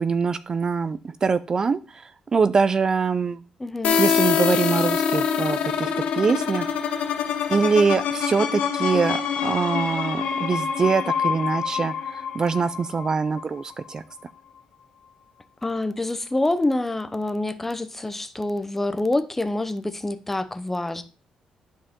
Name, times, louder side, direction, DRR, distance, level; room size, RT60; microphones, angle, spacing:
voice 1, 0.0-3.4 4.0-6.7 7.0-7.1 7.5-14.0, right 5 dB, 35° right, 0.4 m, -24 dB
voice 2, 3.6-4.0 15.6-21.0, left 2 dB, 15° left, 0.8 m, -26 dB
sound 1, 3.8-13.4, left 7 dB, 85° left, 1.3 m, -25 dB
11.0 x 4.6 x 3.7 m
cardioid pair, 110°, 2 cm